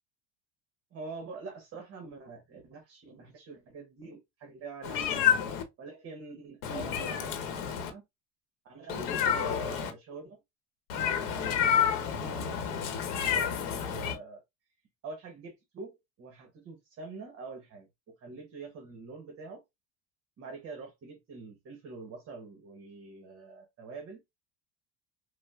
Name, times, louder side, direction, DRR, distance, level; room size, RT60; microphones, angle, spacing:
voice 1, 0.9-5.2 5.8-8.0 8.6-10.4 10.9-14.4 15.0-19.6 20.4-24.2, right 4 dB, 35° right, 0.9 m, -45 dB
Meow, 4.8-5.6 6.6-7.9 8.9-9.9 10.9-14.1, left 8 dB, 75° left, 0.9 m, -29 dB
4.8 x 2.1 x 2.3 m
supercardioid pair, 115°, 38 cm